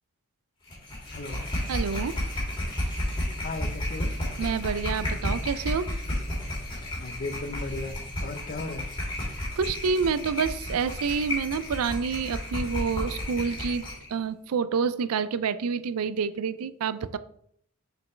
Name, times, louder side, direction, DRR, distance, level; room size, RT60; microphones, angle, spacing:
sound 1, 0.7-14.1, left 1 dB, 25° left, 2.3 m, -32 dB
voice 1, 1.1-1.6 3.4-4.1 7.0-7.9 8.2-8.9, left 3 dB, 40° left, 7 dB, 0.6 m, -36 dB
voice 2, 1.7-2.2 4.4-5.9 9.6-13.8 14.1-17.2, right 5 dB, 80° right, 14 dB, 0.4 m, -28 dB
6.7 x 5.2 x 3.2 m, 0.68 s
head